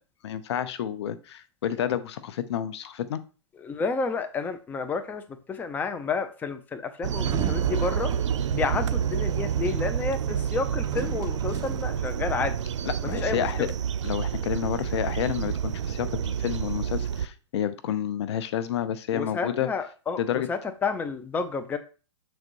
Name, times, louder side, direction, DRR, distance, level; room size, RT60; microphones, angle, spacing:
voice 1, 0.2-3.2 12.8-13.7 14.0-19.7 20.2-20.5, left 10 dB, 65° left, 15 dB, 0.8 m, -30 dB
voice 2, 3.6-5.2 5.5-8.1 8.5-12.6 13.0-13.7 19.1-20.2 20.5-21.8, left 4 dB, 10° left, 8 dB, 0.5 m, -30 dB
sound 1, 7.0-17.3, right 8 dB, 80° right, 0.6 m, -29 dB
Sliding door, 7.1-12.4, right 8 dB, 25° right, 0.8 m, -36 dB
6.4 x 4.0 x 4.6 m, 0.35 s
hypercardioid pair, 130°, 15 cm